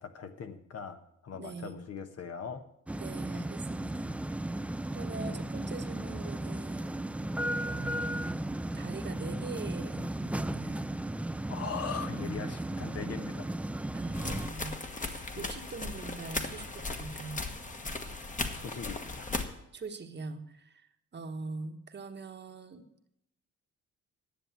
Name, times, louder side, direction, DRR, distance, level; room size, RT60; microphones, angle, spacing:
voice 1, 0.0-2.6 5.2-5.4 11.5-13.5 15.4-15.5 18.5-19.3, left 6 dB, 55° left, 8 dB, 1.2 m, -40 dB
voice 2, 1.3-1.8 3.0-4.1 4.9-6.9 7.6-10.8 13.9-17.4 19.7-22.8, right 3 dB, 35° right, 7 dB, 1.2 m, -43 dB
sound 1, 2.9-14.5, right 1 dB, 5° right, 0.4 m, -35 dB
sound 2, 14.1-19.5, left 3 dB, 25° left, 1.3 m, -37 dB
10.5 x 7.3 x 8.1 m, 0.77 s
cardioid pair, 90°, 30 cm